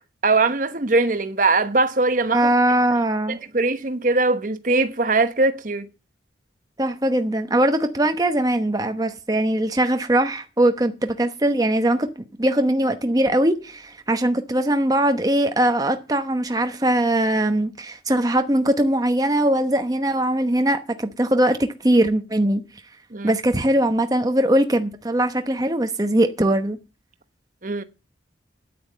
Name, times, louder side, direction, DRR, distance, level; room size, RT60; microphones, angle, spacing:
voice 1, 0.2-2.5 3.5-5.9 23.1-23.4 27.6-27.8, right 3 dB, 45° right, 1.0 m, -21 dB
voice 2, 2.3-3.4 6.8-12.1 12.4-22.6 23.2-26.8, right 1 dB, 20° right, 0.9 m, -21 dB
9.5 x 9.2 x 7.9 m
head